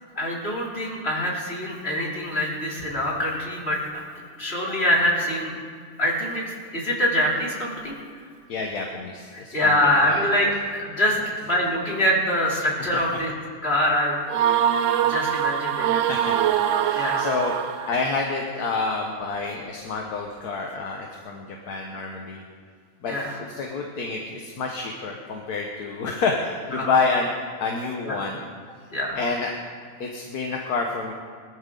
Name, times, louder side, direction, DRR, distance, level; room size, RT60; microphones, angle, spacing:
voice 1, 0.2-5.5 6.0-6.4 6.7-8.0 9.3-10.5 10.8-13.3 13.6-14.1 15.1-15.9 16.9-17.3 21.7-21.8 23.1-23.4 26.7-26.9 28.0-28.4 28.9-29.2, left 1 dB, 40° left, -4 dB, 3.6 m, -24 dB
voice 2, 8.5-10.5 11.1-11.4 12.8-13.2 15.0-15.4 16.0-17.6 17.9-22.4 23.0-23.1 23.5-27.3 27.6-28.4 29.1-29.5 30.0-31.1, left 4 dB, 75° left, 1 dB, 1.7 m, -28 dB
sound 1, 14.3-18.1, right 10 dB, 65° right, 0.9 m, -23 dB
20.5 x 13.5 x 3.9 m, 2.1 s
omnidirectional pair, 1.6 m